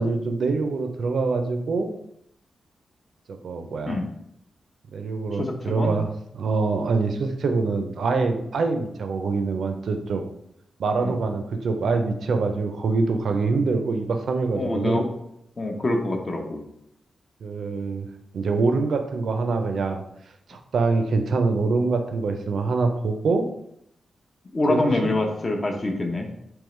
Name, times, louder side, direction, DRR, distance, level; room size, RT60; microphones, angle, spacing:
voice 1, 0.0-1.9 3.3-4.0 4.9-6.1 6.3-10.3 10.8-15.0 17.4-18.1 18.3-20.0 20.5-23.5 24.7-25.1, right 4 dB, 75° right, 6 dB, 0.4 m, -24 dB
voice 2, 5.3-5.9 10.9-11.2 14.6-15.1 15.6-16.6 24.5-26.3, left 2 dB, 35° left, 3 dB, 0.7 m, -25 dB
3.6 x 2.9 x 3.1 m, 0.76 s
cardioid pair, 90°, 0 cm